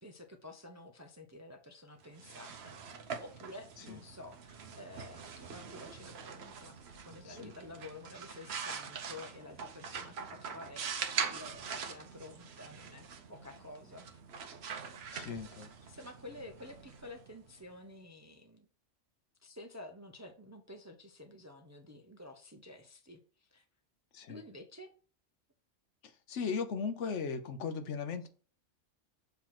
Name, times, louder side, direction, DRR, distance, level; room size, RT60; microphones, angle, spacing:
voice 1, 0.0-14.2 15.1-18.7 19.4-23.6 24.3-24.9, left 2 dB, 20° right, 0.5 m, -51 dB
sound 1, 2.0-17.7, right 6 dB, 65° right, 1.0 m, -43 dB
voice 2, 15.1-15.7 24.1-24.4 26.0-28.3, left 5 dB, 70° left, 1.1 m, -37 dB
6.9 x 2.9 x 5.8 m
omnidirectional pair, 1.3 m